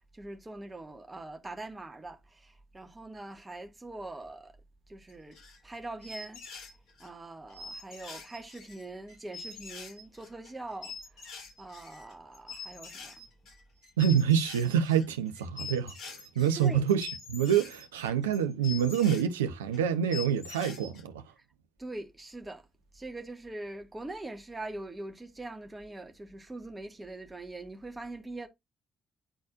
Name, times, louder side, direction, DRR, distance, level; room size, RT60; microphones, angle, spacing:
voice 1, 0.0-4.6 4.9-5.4 5.6-6.4 7.0-13.2 16.5-16.8 21.4-21.5 21.8-22.7 22.9-28.5, right 2 dB, 20° right, 1.7 m, -43 dB
sound 1, 5.1-5.7 6.0-7.1 7.5-19.2 19.7-19.8 20.1-21.0, left 5 dB, 60° left, 4.1 m, -44 dB
voice 2, 14.0-21.2, right 8 dB, 80° right, 0.6 m, -27 dB
9.9 x 4.1 x 2.5 m
figure-of-eight pair, 45°, 0 cm